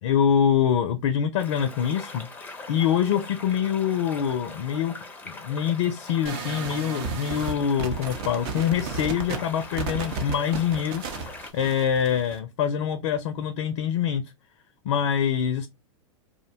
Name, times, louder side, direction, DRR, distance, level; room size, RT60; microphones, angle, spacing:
voice 1, 0.0-2.3 2.7-5.0 5.3-11.0 11.5-14.2 14.8-15.7, left 8 dB, 65° left, 0.4 m, -25 dB
sound 1, 1.4-11.5, left 3 dB, 10° left, 0.5 m, -42 dB
sound 2, 6.3-12.4, right 5 dB, 50° right, 0.6 m, -34 dB
2.5 x 2.1 x 2.6 m
hypercardioid pair, 110°, 17 cm